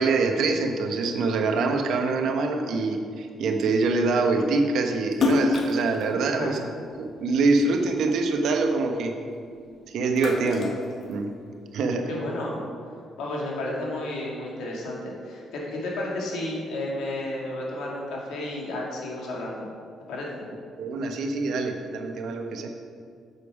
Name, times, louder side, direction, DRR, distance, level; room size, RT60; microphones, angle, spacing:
voice 1, 0.0-6.6 7.0-9.1 9.9-10.7 11.1-11.3 11.7-12.1 20.8-22.7, right 3 dB, 75° right, 5 dB, 0.9 m, -25 dB
Splash splatter, 5.1-7.7 8.1-9.6 9.9-11.7, left 3 dB, 55° left, 0.9 m, -28 dB
voice 2, 6.1-6.6 12.1-12.6 13.2-19.7 20.1-20.4, left 1 dB, 85° left, -3 dB, 2.1 m, -32 dB
8.5 x 6.8 x 4.9 m, 2.2 s
cardioid pair, 90°, 0 cm